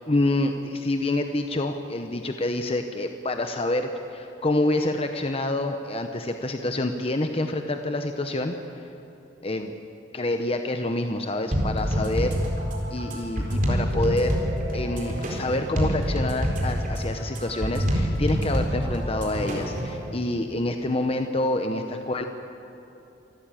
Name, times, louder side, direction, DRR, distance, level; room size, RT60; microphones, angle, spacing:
voice 1, 0.1-8.9 9.4-9.7 10.1-12.4 12.9-14.4 14.7-22.3, left 2 dB, 30° left, 6 dB, 0.9 m, -27 dB
sound 1, 11.5-20.0, equal, 45° right, 4.3 m, -26 dB
26.5 x 13.5 x 9.0 m, 3.0 s
head